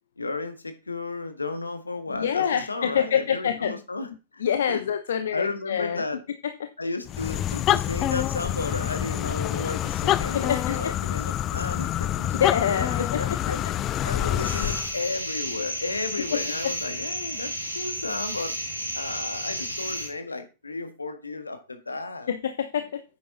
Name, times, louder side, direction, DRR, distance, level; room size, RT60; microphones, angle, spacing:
voice 1, 0.2-4.8 5.3-6.2 6.8-12.1 12.7-13.6 14.0-18.5 18.9-22.3, left 3 dB, 80° left, 8 dB, 1.7 m, -33 dB
voice 2, 2.1-3.7 4.4-6.0 6.4-6.7 10.3-10.9 12.2-13.6 16.3-16.7 22.3-23.0, left 8 dB, 65° left, 10 dB, 0.8 m, -27 dB
sound 1, 7.1-14.9, left 12 dB, 35° left, 0.5 m, -27 dB
sound 2, 14.4-20.1, equal, 90° right, 2.7 m, -32 dB
9.3 x 8.6 x 3.9 m, 0.31 s
figure-of-eight pair, 90°, 0 cm